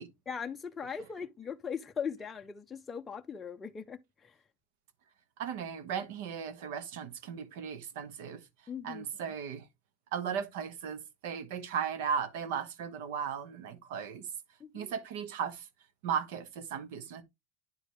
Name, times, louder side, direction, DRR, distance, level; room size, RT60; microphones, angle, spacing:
voice 1, 0.3-4.4 8.7-9.3 14.6-14.9, left 6 dB, 15° left, 0.5 m, -40 dB
voice 2, 5.4-8.4 8.8-9.7 10.1-14.3 14.7-15.7 16.0-17.2, right 7 dB, 65° right, 1.3 m, -36 dB
10.0 x 4.8 x 3.4 m
supercardioid pair, 165°, 0 cm